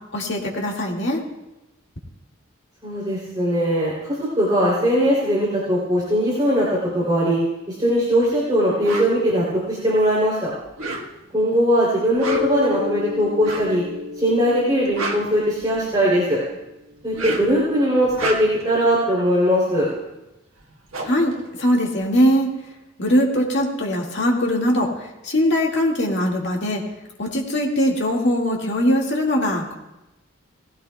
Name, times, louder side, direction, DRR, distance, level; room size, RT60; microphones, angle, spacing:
voice 1, 0.1-1.2 21.0-22.5 23.0-26.8 27.2-29.7, equal, 55° left, -1 dB, 2.1 m, -21 dB
voice 2, 2.8-6.7 6.9-7.4 7.7-10.5 11.3-13.8 14.2-16.4 17.0-19.9, equal, 20° right, -7 dB, 3.1 m, -20 dB
sound 1, 8.8-9.1 10.6-11.4 12.1-12.6 13.4-13.8 14.7-16.0 17.0-17.6 18.0-18.7 20.3-20.4 20.6-22.3, right 2 dB, 85° right, 1.5 m, -30 dB
Mallet percussion, 12.2-16.6, left 5 dB, 55° right, 4.0 m, -31 dB
18.5 x 16.0 x 2.3 m, 0.96 s
head